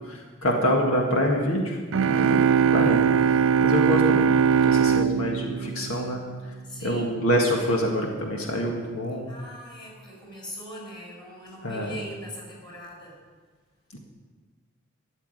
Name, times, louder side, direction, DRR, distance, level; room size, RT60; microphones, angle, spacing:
voice 1, 0.1-1.8 2.0-2.4 2.7-4.3 4.7-6.2 6.8-9.3 11.6-11.9 13.9-14.0, equal, 80° left, 0 dB, 1.8 m, -26 dB
sound 1, 1.9-6.6, right 7 dB, 65° right, 0.4 m, -21 dB
voice 2, 3.4-3.9 6.6-7.1 9.3-13.2, equal, 20° left, -2 dB, 5.2 m, -41 dB
13.0 x 7.2 x 9.8 m, 1.5 s
head